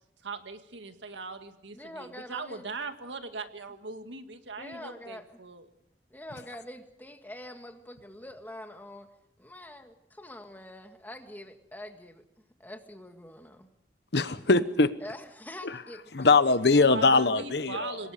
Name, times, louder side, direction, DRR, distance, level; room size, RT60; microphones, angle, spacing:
voice 1, 0.2-5.6 16.8-18.1, right 3 dB, 90° right, 7 dB, 2.0 m, -40 dB
voice 2, 1.7-2.7 4.6-5.4 6.1-9.1 9.4-13.7 15.0-16.4, left 1 dB, 10° left, 5 dB, 1.9 m, -45 dB
voice 3, 14.1-14.9 16.1-18.0, left 3 dB, 65° left, 13 dB, 1.1 m, -22 dB
27.0 x 20.0 x 5.1 m, 0.78 s
head